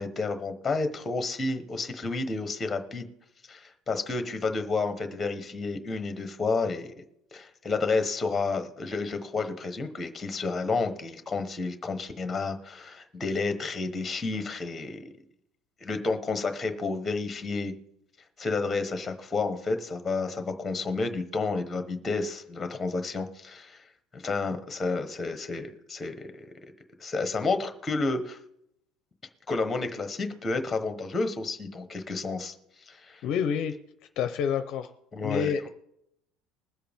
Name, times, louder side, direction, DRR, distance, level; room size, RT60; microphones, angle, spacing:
voice 1, 0.0-3.1 3.5-6.9 7.3-15.1 15.8-17.7 18.4-23.8 24.1-26.5 27.0-28.4 29.5-32.5 32.9-33.2 35.1-35.5, left 3 dB, 10° left, 8 dB, 1.1 m, -30 dB
voice 2, 33.2-33.7 34.2-34.9 35.2-35.7, left 7 dB, 40° left, 10 dB, 0.6 m, -28 dB
21.0 x 7.7 x 3.5 m, 0.76 s
cardioid pair, 180°, 0 cm